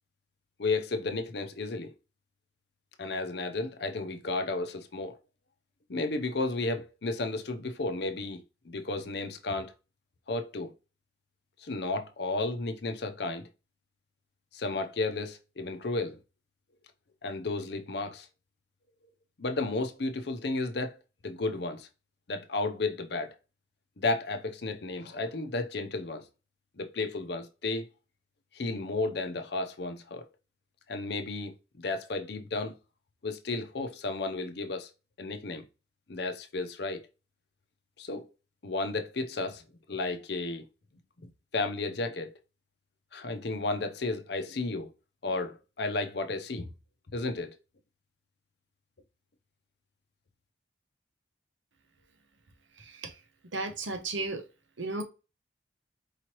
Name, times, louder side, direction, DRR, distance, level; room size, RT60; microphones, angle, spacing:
voice 1, 0.6-1.9 3.0-5.2 5.9-9.7 10.3-10.7 11.6-13.5 14.5-16.2 17.2-18.3 19.4-21.0 21.2-21.9 22.3-23.3 24.0-26.2 26.8-27.9 28.5-30.3 30.9-32.7 33.2-34.9 35.2-35.7 36.1-37.0 38.0-38.3 38.6-39.6 39.9-40.6 41.5-42.3 43.1-44.9 45.2-46.7 47.1-47.5, left 3 dB, 60° left, 0.6 m, -33 dB
voice 2, 52.8-53.1 53.5-54.4 54.8-55.0, right 3 dB, 85° right, 0.9 m, -34 dB
4.8 x 3.1 x 2.9 m
head